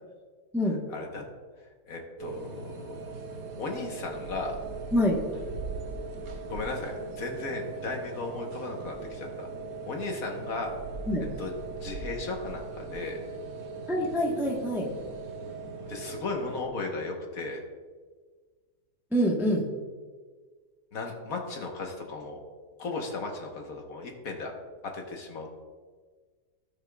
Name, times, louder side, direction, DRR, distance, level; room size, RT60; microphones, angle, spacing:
voice 1, 0.9-1.2 1.9-2.9 3.6-4.5 6.5-9.5 9.8-10.7 11.4-11.5 11.8-13.2 15.9-17.6 20.9-22.4 22.8-24.5 24.8-25.6, left 3 dB, 60° left, 2 dB, 1.5 m, -36 dB
sound 1, 2.2-16.7, right 4 dB, 80° right, 1.7 m, -39 dB
voice 2, 13.9-14.9 19.1-19.6, equal, ahead, -1 dB, 0.7 m, -25 dB
17.0 x 5.9 x 2.3 m, 1.5 s
omnidirectional pair, 1.8 m